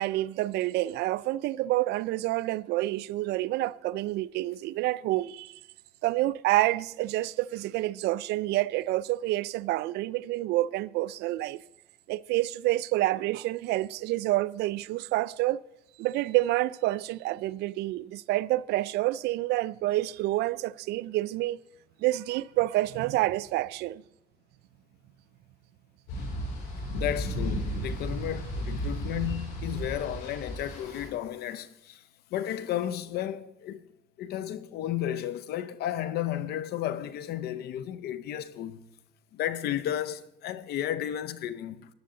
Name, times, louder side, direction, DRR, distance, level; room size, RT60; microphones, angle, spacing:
voice 1, 0.0-5.6 6.0-11.6 12.1-15.6 16.0-21.6 22.0-24.0, right 17 dB, 80° right, 0.4 m, -28 dB
sound 1, 26.1-31.1, equal, 90° left, 5.6 m, -34 dB
voice 2, 26.9-32.0 32.3-33.9 34.2-38.8 39.3-41.9, left 11 dB, 70° left, 0.7 m, -33 dB
14.5 x 10.5 x 3.8 m
cardioid pair, 110°, 17 cm